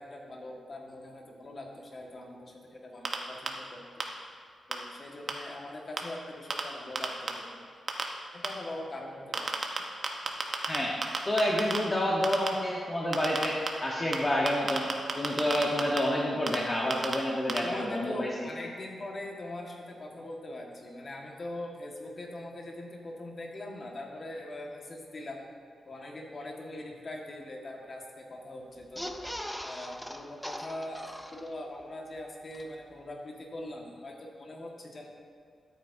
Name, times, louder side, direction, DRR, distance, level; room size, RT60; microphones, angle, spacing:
voice 1, 0.0-4.0 4.7-7.6 8.3-9.6 17.6-25.4 25.8-29.1 29.6-35.1, left 1 dB, 40° left, 0 dB, 1.6 m, -42 dB
sound 1, 3.0-3.2 3.5-3.6 4.0-4.1 4.7-4.8 5.3-5.4 6.0-6.1 6.5-6.6 7.0-7.3 7.9-8.0 8.4-8.5 9.3-9.8 10.0-10.8 11.0-11.8 12.2-12.5 13.1-13.7 14.1-14.2 14.5-16.0 16.5-16.6 16.9-17.2 17.5-17.6, right 4 dB, 50° right, 1.0 m, -29 dB
voice 2, 11.2-14.9 15.2-18.5, left 1 dB, 25° left, -3 dB, 1.2 m, -29 dB
sound 2, 28.8-31.8 32.2-32.3 32.5-32.6, equal, 5° left, 0.5 m, -40 dB
13.0 x 8.3 x 2.7 m, 2.4 s
cardioid pair, 95°, 0 cm